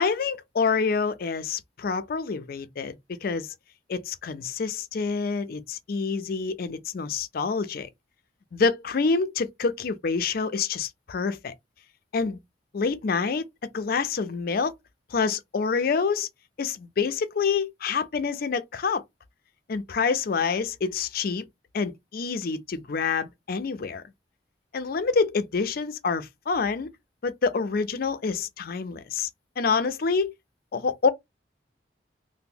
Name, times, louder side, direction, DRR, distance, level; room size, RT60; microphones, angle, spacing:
voice 1, 0.0-3.5 3.9-7.9 8.5-11.5 12.1-12.4 12.7-14.7 15.1-16.3 16.6-19.0 19.7-21.5 21.7-24.0 24.7-26.9 27.2-29.3 29.6-30.3 30.7-31.1, left 5 dB, 55° left, 0.4 m, -27 dB
2.9 x 2.1 x 3.5 m
head